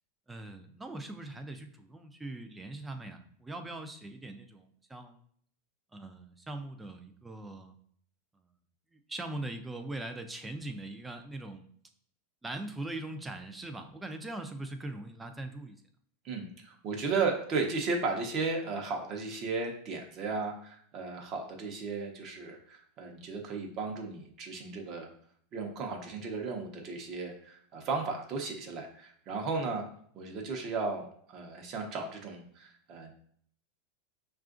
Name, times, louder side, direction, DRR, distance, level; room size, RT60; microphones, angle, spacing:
voice 1, 0.3-5.2 5.9-7.7 8.9-11.7 12.4-15.8, right 2 dB, 10° right, 7 dB, 0.4 m, -41 dB
voice 2, 16.2-25.1 25.5-29.8 30.1-33.1, right 4 dB, 40° right, 2 dB, 0.8 m, -35 dB
5.5 x 2.4 x 2.5 m, 0.62 s
supercardioid pair, 130°, 0 cm